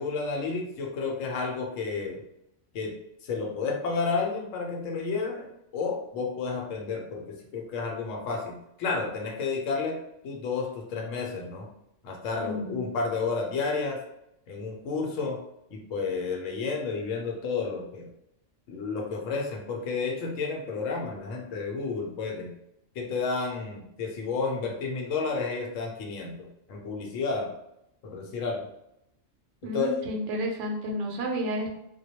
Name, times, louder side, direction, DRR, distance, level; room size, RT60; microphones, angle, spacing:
voice 1, 0.0-2.2 2.7-2.9 3.2-10.0 10.2-11.7 12.0-14.0 14.5-15.4 15.7-18.1 18.7-22.5 23.0-27.5 28.0-28.6 29.7-30.0, left 4 dB, 85° left, 2 dB, 0.9 m, -31 dB
voice 2, 12.4-12.9 29.6-31.7, equal, 75° right, 1 dB, 0.9 m, -31 dB
2.2 x 2.1 x 2.7 m, 0.81 s
omnidirectional pair, 1.3 m